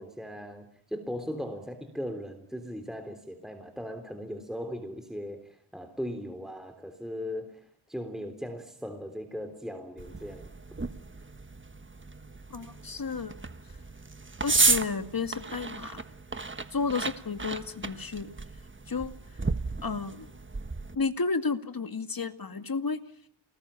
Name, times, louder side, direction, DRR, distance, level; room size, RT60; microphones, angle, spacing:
voice 1, 0.0-10.5 14.6-14.7, equal, ahead, 6 dB, 3.5 m, -38 dB
sound 1, 10.0-20.9, right 3 dB, 25° right, 1.3 m, -33 dB
voice 2, 12.5-13.4 14.4-16.0 16.7-18.3 18.9-19.1 19.8-20.3 20.9-23.0, left 4 dB, 45° left, 8 dB, 2.3 m, -32 dB
28.5 x 20.0 x 8.7 m, 0.70 s
cardioid pair, 75°, 49 cm